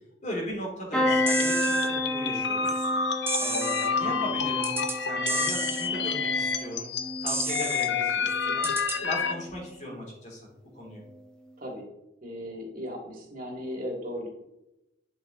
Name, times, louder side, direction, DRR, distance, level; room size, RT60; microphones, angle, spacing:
voice 1, 0.2-2.9 3.4-6.9 7.2-8.7 9.0-10.5 10.7-11.0, equal, 45° left, -2 dB, 3.4 m, -37 dB
sound 1, 0.9-8.8 9.2-9.7 11.0-11.2 11.4-11.5, equal, 5° left, 1.4 m, -33 dB
sound 2, 1.0-9.3, left 5 dB, 85° left, 0.8 m, -29 dB
sound 3, 1.3-1.9 3.3-3.9 4.6-5.0 5.3-5.9 7.3-7.9 8.6-9.0, right 4 dB, 15° right, 0.7 m, -32 dB
voice 2, 4.0-4.4 11.6-11.9 12.2-14.3, equal, 55° right, -1 dB, 2.7 m, -37 dB
10.0 x 6.1 x 3.9 m, 0.90 s
head